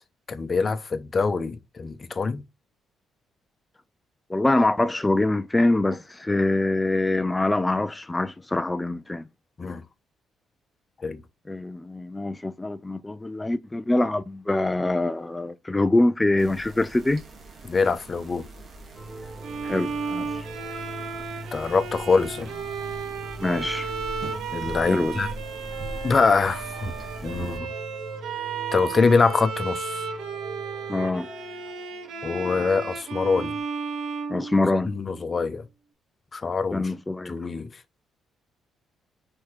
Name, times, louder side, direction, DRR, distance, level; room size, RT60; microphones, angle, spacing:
voice 1, 0.3-2.4 9.6-9.8 11.0-11.2 17.6-18.5 21.5-22.5 24.5-25.3 26.0-26.9 27.2-27.7 28.7-30.1 32.2-33.5 34.8-35.7 36.3-36.9 37.2-37.8, left 4 dB, 35° left, 1.0 m, -24 dB
voice 2, 4.3-9.3 11.5-17.2 19.6-20.4 23.4-23.9 24.9-25.2 30.9-31.3 34.3-34.9 36.7-37.3, left 2 dB, 15° left, 0.5 m, -24 dB
sound 1, 16.4-27.6, right 2 dB, 50° right, 2.0 m, -42 dB
sound 2, 18.9-33.6, right 1 dB, 25° right, 2.4 m, -42 dB
Bowed string instrument, 19.4-35.2, right 5 dB, 80° right, 1.4 m, -34 dB
4.8 x 4.6 x 4.4 m
cardioid pair, 90°, 0 cm